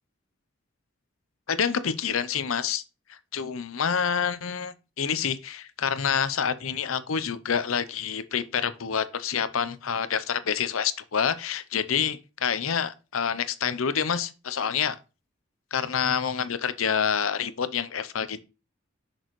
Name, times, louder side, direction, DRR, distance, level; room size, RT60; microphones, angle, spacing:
voice 1, 1.5-2.8 3.1-15.0 15.7-18.4, left 7 dB, 90° left, 0.7 m, -27 dB
6.4 x 6.2 x 3.1 m
head